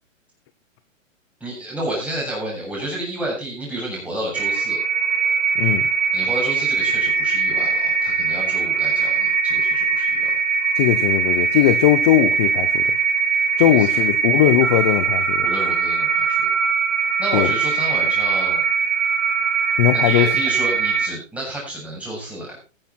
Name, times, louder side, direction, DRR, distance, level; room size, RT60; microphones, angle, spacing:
voice 1, 1.4-4.8 6.1-10.3 13.6-13.9 15.4-16.5 17.2-18.6 19.9-22.6, right 1 dB, 5° right, -4 dB, 7.4 m, -30 dB
sound 1, 4.3-21.1, right 6 dB, 60° right, 5.7 m, -21 dB
voice 2, 10.8-12.8 13.6-15.5 17.3-17.5 19.8-20.3, left 13 dB, 20° left, 11 dB, 0.6 m, -18 dB
16.5 x 10.5 x 4.3 m, 0.31 s
hypercardioid pair, 155°, 40 cm